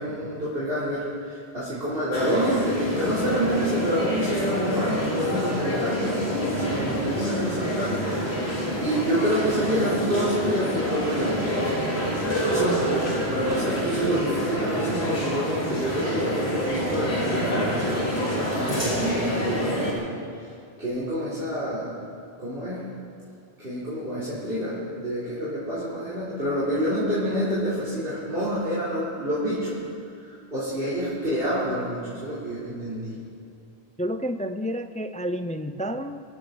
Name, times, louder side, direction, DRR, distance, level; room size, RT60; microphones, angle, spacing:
voice 1, 0.0-8.0 8.8-11.5 12.5-20.1 20.8-22.0 22.4-22.8 23.6-29.8 30.5-33.2, equal, 65° right, -10 dB, 3.9 m, -28 dB
sound 1, 2.1-19.9, equal, 90° left, 3.5 m, -27 dB
voice 2, 34.0-36.2, equal, 10° left, 8 dB, 0.3 m, -30 dB
26.0 x 12.5 x 4.0 m, 2.5 s
omnidirectional pair, 1.0 m